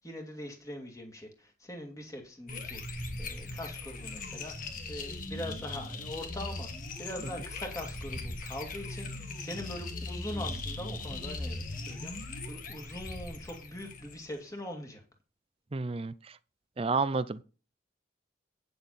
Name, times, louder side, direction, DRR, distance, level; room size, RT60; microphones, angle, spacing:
voice 1, 0.0-6.7 7.0-12.1 12.5-15.0, left 1 dB, 20° left, 2.2 m, -42 dB
sound 1, 2.5-14.4, left 2 dB, 45° left, 1.8 m, -39 dB
voice 2, 15.7-16.4 16.8-17.4, right 4 dB, 30° right, 0.5 m, -31 dB
9.4 x 7.7 x 4.1 m
head